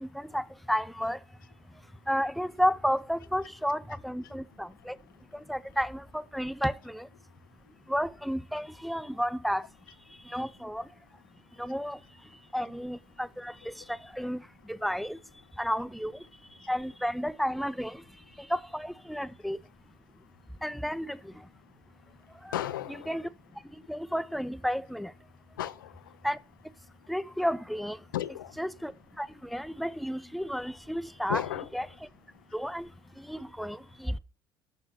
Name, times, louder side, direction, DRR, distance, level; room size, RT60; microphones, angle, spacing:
voice 1, 0.0-1.2 2.1-4.9 5.5-7.1 7.9-9.6 10.3-10.8 11.6-12.0 12.5-14.4 14.7-15.2 15.6-16.2 16.7-18.0 18.5-19.6 20.6-21.2 22.5-22.6 22.9-23.2 23.9-25.1 26.2-26.4 27.1-28.0 28.6-28.9 29.2-31.4 31.7-31.9 32.5-32.9 33.3-34.2, equal, ahead, 0.5 m, -32 dB
voice 2, 22.5-23.1 25.6-25.7 28.1-28.5 31.3-31.7, left 12 dB, 85° left, 0.5 m, -33 dB
6.6 x 6.3 x 5.9 m
hypercardioid pair, 65°, 11 cm